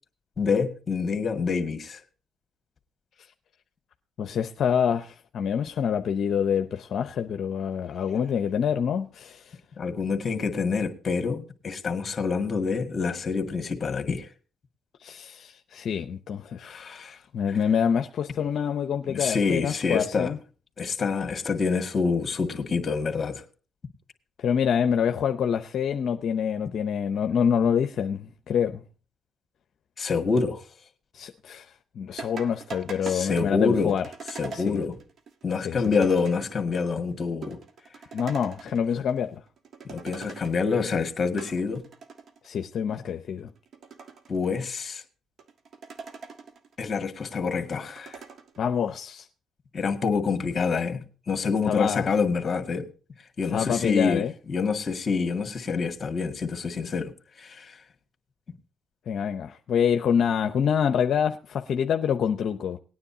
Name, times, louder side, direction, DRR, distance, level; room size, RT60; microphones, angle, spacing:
voice 1, 0.4-2.0 9.8-14.3 16.6-17.2 19.1-20.3 20.8-23.4 30.0-30.6 33.0-33.9 34.4-35.0 35.4-37.6 38.9-39.0 39.8-41.8 44.3-45.0 46.8-48.2 49.7-52.9 53.4-57.1 57.4-57.8, left 5 dB, 35° left, 2.0 m, -27 dB
voice 2, 4.2-9.6 15.0-20.4 24.4-28.8 31.1-34.1 34.5-34.8 35.6-35.9 38.1-39.4 42.4-43.5 48.6-49.3 51.7-52.1 53.5-54.3 59.1-62.8, left 7 dB, 60° left, 0.7 m, -26 dB
sound 1, 32.2-36.8 37.1-37.2 37.4-39.2 39.5-40.8 41.2-42.5 43.0-43.1 43.6-44.8 45.4-46.7 47.1-48.6, right 5 dB, 55° right, 1.5 m, -42 dB
19.0 x 9.7 x 2.8 m
cardioid pair, 85°, 0 cm